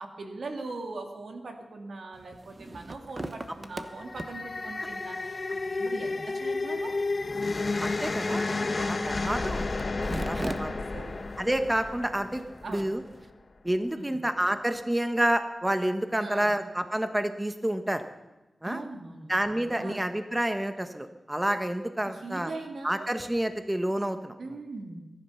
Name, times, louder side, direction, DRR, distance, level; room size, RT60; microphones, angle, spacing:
voice 1, 0.0-6.9 8.5-8.9 10.7-11.2 12.6-12.9 14.0-14.2 16.2-16.6 18.6-20.1 22.0-23.1 24.4-25.0, right 3 dB, 75° right, 4 dB, 2.3 m, -41 dB
sound 1, 2.1-13.3, right 2 dB, 30° right, 1.2 m, -43 dB
sound 2, 3.8-13.1, left 3 dB, 50° left, 1.0 m, -32 dB
voice 2, 7.8-8.5 8.8-9.7 10.2-10.7 11.4-12.4 12.7-13.0 13.6-18.0 18.6-18.8 19.3-22.5 22.8-24.3, right 1 dB, 15° right, 8 dB, 1.2 m, -29 dB
22.0 x 11.0 x 5.8 m, 1.0 s
cardioid pair, 55°, 0 cm